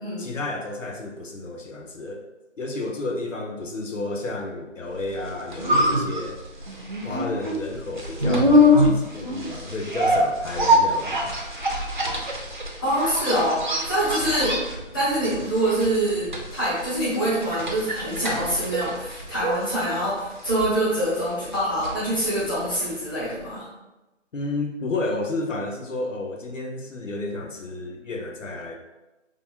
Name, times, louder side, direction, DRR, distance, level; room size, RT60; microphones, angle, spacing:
voice 1, 0.2-2.2 2.6-6.4 7.0-11.3 24.3-28.8, left 2 dB, 75° left, 2 dB, 0.7 m, -31 dB
sound 1, 5.1-23.1 23.4-23.5, left 1 dB, 40° right, 0.4 m, -25 dB
voice 2, 12.8-14.6 14.9-23.6, right 1 dB, 15° left, -10 dB, 0.8 m, -25 dB
4.7 x 2.4 x 2.6 m, 1.0 s
figure-of-eight pair, 155°, 38 cm